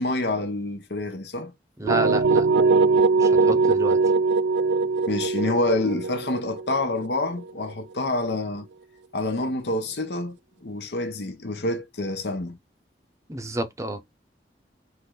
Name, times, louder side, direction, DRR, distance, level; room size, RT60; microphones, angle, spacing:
voice 1, 0.0-1.5 5.1-8.7 9.1-12.6, left 2 dB, 75° left, 1.1 m, -27 dB
voice 2, 1.8-2.5 3.2-4.0 13.3-14.0, right 1 dB, 15° right, 0.7 m, -30 dB
sound 1, 1.9-7.7, right 4 dB, 90° right, 0.4 m, -21 dB
3.8 x 3.2 x 3.8 m
head